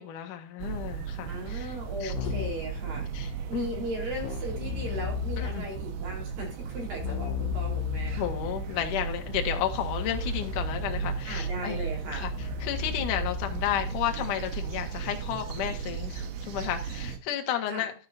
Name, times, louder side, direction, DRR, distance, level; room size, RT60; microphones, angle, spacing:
voice 1, 0.0-1.8 2.0-2.3 3.1-3.7 5.4-5.7 8.2-11.8 12.1-17.9, left 10 dB, 60° left, 5 dB, 2.4 m, -32 dB
sound 1, 0.6-17.2, right 6 dB, 75° right, 3.6 m, -35 dB
voice 2, 1.3-8.2 11.3-12.3 17.7-17.9, right 1 dB, 50° right, 0 dB, 5.6 m, -37 dB
Keyboard (musical), 2.1-2.8 4.2-5.8 7.0-14.1, left 14 dB, 80° left, 2.6 m, -36 dB
12.5 x 9.9 x 2.7 m, 0.35 s
omnidirectional pair, 5.5 m